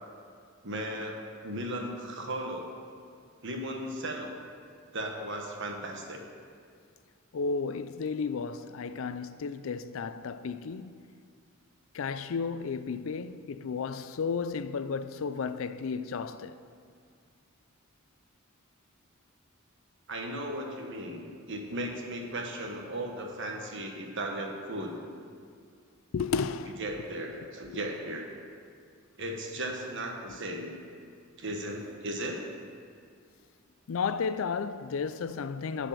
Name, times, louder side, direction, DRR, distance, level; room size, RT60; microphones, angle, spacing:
voice 1, 0.6-2.7 3.4-4.3 4.9-6.2 20.1-25.0 26.8-28.3 29.2-30.7 31.4-32.4, right 1 dB, 60° right, 1.4 m, -36 dB
voice 2, 7.3-11.0 11.9-16.6 26.1-26.8 27.3-27.5 33.9-35.9, left 5 dB, 70° left, 0.4 m, -33 dB
11.5 x 4.9 x 7.6 m
head